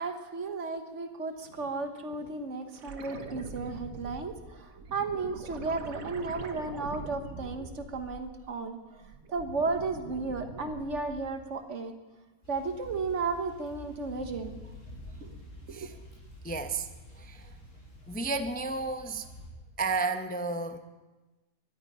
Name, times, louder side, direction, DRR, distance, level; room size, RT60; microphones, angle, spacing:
voice 1, 0.0-8.8 9.3-11.9 12.5-14.6 15.2-15.4 15.7-15.9, right 3 dB, 60° right, 7 dB, 1.5 m, -34 dB
sound 1, 2.8-8.6 8.9-11.5 13.9-14.0, right 4 dB, 75° right, 1.6 m, -44 dB
sound 2, 12.4-19.5, left 1 dB, 60° left, 4.9 m, -48 dB
voice 2, 16.4-16.9 17.2-17.5 18.1-19.3 19.8-20.8, right 3 dB, 10° left, 7 dB, 0.6 m, -32 dB
21.5 x 12.0 x 5.5 m, 1.2 s
omnidirectional pair, 1.5 m